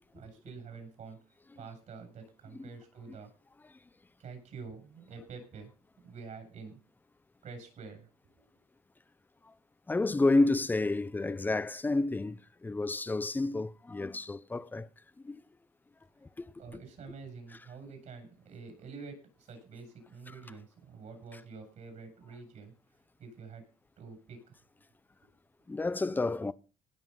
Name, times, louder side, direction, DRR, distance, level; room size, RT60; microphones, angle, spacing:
voice 1, 0.1-1.2 1.5-3.3 4.2-5.7 6.0-6.8 7.4-8.1 16.6-22.7 23.2-23.6 24.0-24.5, right 5 dB, 50° right, 7.9 m, -47 dB
voice 2, 9.9-14.9 15.2-15.4 16.4-16.5 20.3-20.4 21.3-21.4 25.7-26.5, left 2 dB, 10° left, 0.6 m, -30 dB
18.5 x 7.3 x 5.7 m
cardioid pair, 125°, 16 cm